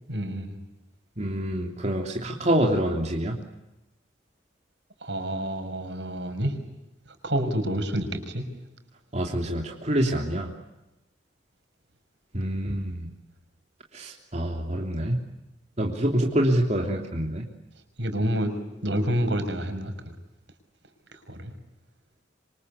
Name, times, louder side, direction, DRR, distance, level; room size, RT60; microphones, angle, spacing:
voice 1, 0.1-0.6 5.0-6.5 7.2-8.4 18.0-18.5 18.8-19.9 21.3-21.5, equal, 75° right, 6 dB, 5.9 m, -28 dB
voice 2, 1.2-3.3 9.1-10.5 12.3-13.1 13.9-15.2 15.8-17.4, right 1 dB, 40° right, 1 dB, 3.2 m, -26 dB
27.5 x 25.5 x 8.4 m, 0.95 s
head